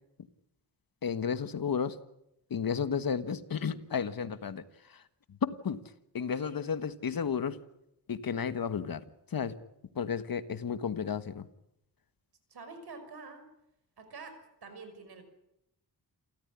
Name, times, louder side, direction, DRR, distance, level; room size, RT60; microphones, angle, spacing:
voice 1, 1.0-2.0 2.5-5.0 5.3-5.8 6.1-7.6 8.1-9.6 9.9-11.5, left 6 dB, 60° left, 12 dB, 1.6 m, -33 dB
voice 2, 12.5-13.4 14.0-15.2, right 4 dB, 70° right, 7 dB, 5.8 m, -47 dB
28.5 x 14.5 x 9.8 m, 0.84 s
wide cardioid pair, 110°, 39 cm